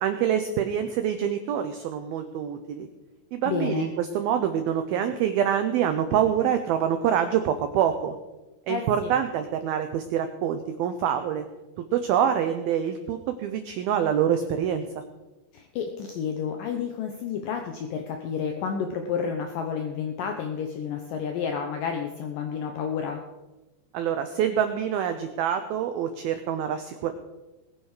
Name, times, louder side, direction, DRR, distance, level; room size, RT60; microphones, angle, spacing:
voice 1, 0.0-2.9 3.3-8.1 8.7-11.5 11.9-14.9 23.9-27.1, right 9 dB, 80° right, 8 dB, 2.2 m, -26 dB
voice 2, 3.5-3.9 8.7-9.1 15.5-23.2, left 6 dB, 80° left, 4 dB, 2.0 m, -30 dB
21.0 x 9.4 x 4.9 m, 1.1 s
omnidirectional pair, 5.4 m